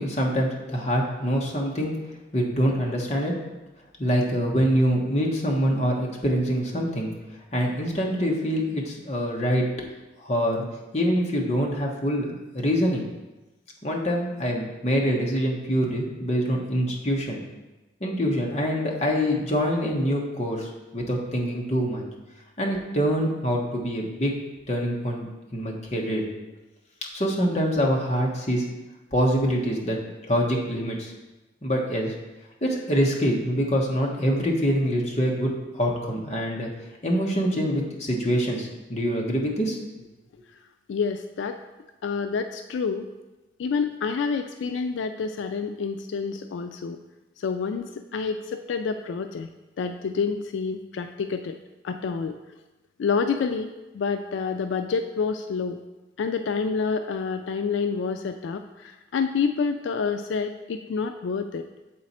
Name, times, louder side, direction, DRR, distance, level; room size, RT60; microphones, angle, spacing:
voice 1, 0.0-1.9 2.3-3.3 4.0-7.1 7.5-9.7 10.2-10.6 10.9-13.0 13.8-17.4 18.0-22.0 22.6-24.3 24.7-25.3 25.5-26.3 27.1-28.6 29.1-30.0 30.3-31.1 31.6-32.1 32.6-36.7 37.0-39.8, equal, 35° left, -1 dB, 1.1 m, -25 dB
voice 2, 40.9-41.6 42.0-43.1 43.6-47.0 47.4-49.5 49.8-51.6 51.8-52.4 53.0-55.8 56.2-61.6, left 5 dB, 80° left, 7 dB, 0.3 m, -28 dB
7.6 x 4.1 x 4.2 m, 1.1 s
head